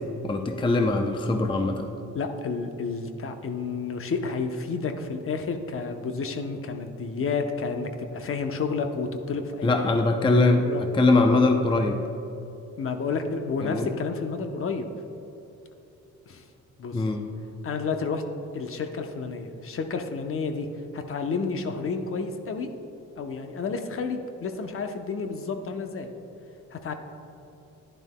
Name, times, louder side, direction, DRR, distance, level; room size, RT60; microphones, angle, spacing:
voice 1, 0.2-1.9 9.6-12.0 13.6-13.9 16.9-17.2, left 2 dB, 15° left, 5 dB, 0.5 m, -22 dB
voice 2, 2.1-9.7 10.2-10.8 12.8-14.9 16.3-16.4 16.8-17.0 17.6-18.2 18.5-20.7 20.9-22.7 23.2-26.1 26.7-26.9, left 4 dB, 45° left, 6 dB, 0.8 m, -30 dB
10.5 x 10.5 x 2.2 m, 3.0 s
cardioid pair, 90°, 30 cm